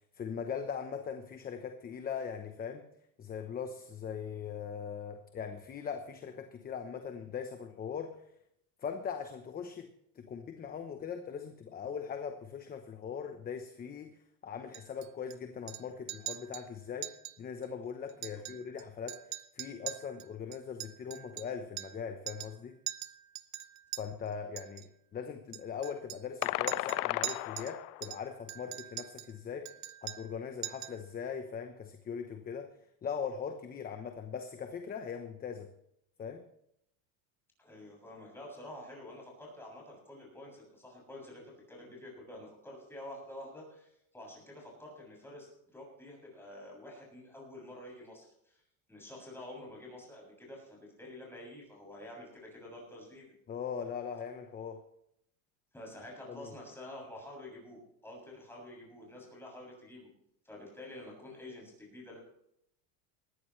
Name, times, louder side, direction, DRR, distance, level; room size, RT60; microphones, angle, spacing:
voice 1, 0.1-2.9 3.2-8.2 8.8-9.9 10.1-19.2 19.5-22.8 24.0-29.7 30.0-32.7 33.0-35.7 36.2-36.5 53.5-54.8 56.3-56.5, left 7 dB, 20° left, 6 dB, 0.9 m, -40 dB
Chink clink, 14.7-15.4 15.7-16.7 17.0-17.4 17.6-17.7 18.1-18.8 19.1-22.0 22.3-22.6 22.9-24.0 24.6-24.9 25.5-27.7 28.0-29.3 29.7-30.4 30.6-31.0, right 16 dB, 40° right, 0.8 m, -42 dB
sound 1, 26.4-28.1, left 21 dB, 90° left, 0.6 m, -34 dB
voice 2, 37.6-48.6 48.9-53.3 55.7-60.1 60.4-62.2, left 1 dB, 5° left, -2 dB, 7.1 m, -48 dB
19.5 x 14.0 x 3.2 m, 0.75 s
cardioid pair, 150°, 43 cm